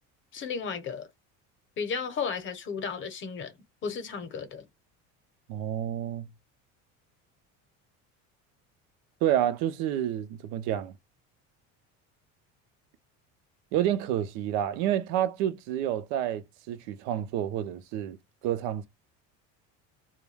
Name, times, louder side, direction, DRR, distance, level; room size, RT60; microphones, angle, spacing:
voice 1, 0.3-1.1 1.8-3.5 3.8-4.7, left 6 dB, 35° left, 0.7 m, -34 dB
voice 2, 5.5-6.3 9.2-10.9 13.7-18.2 18.4-18.9, right 11 dB, 85° right, 0.6 m, -29 dB
2.3 x 2.2 x 3.2 m
cardioid pair, 150°, 34 cm